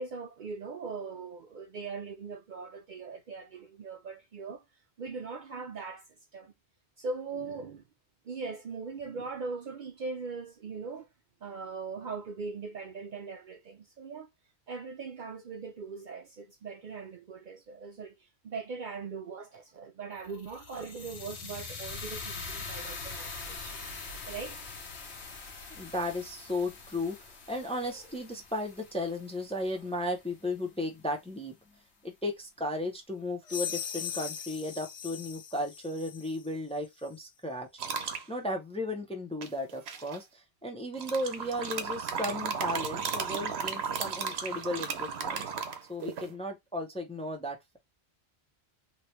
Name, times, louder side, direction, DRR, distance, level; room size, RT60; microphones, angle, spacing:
voice 1, 0.0-4.6 5.0-6.5 7.0-7.8 8.2-11.1 11.4-14.3 14.7-23.9 24.3-24.6, right 4 dB, 55° right, 0.6 m, -40 dB
sound 1, 20.2-30.3, left 4 dB, 90° left, 1.1 m, -43 dB
voice 2, 25.7-31.5 32.0-37.7 38.3-45.5 45.9-47.8, left 1 dB, 5° left, 0.6 m, -35 dB
sound 2, 33.5-36.5, left 9 dB, 55° left, 0.4 m, -39 dB
sound 3, 37.8-38.2 39.4-40.2 40.9-46.3, right 6 dB, 75° right, 1.0 m, -34 dB
2.9 x 2.8 x 3.1 m
omnidirectional pair, 1.1 m